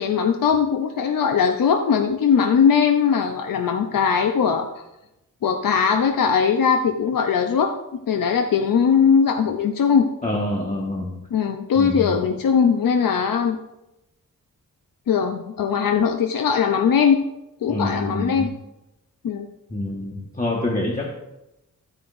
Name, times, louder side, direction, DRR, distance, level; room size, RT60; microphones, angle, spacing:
voice 1, 0.0-4.7 5.4-10.1 11.3-13.6 15.1-17.2 17.6-18.5 19.2-19.5, left 6 dB, 85° left, 5 dB, 0.7 m, -20 dB
voice 2, 10.2-11.2 11.8-12.2 17.7-18.5 19.7-21.1, left 1 dB, 25° left, -2 dB, 1.4 m, -26 dB
14.5 x 9.6 x 2.6 m, 0.91 s
wide cardioid pair, 105°, 33 cm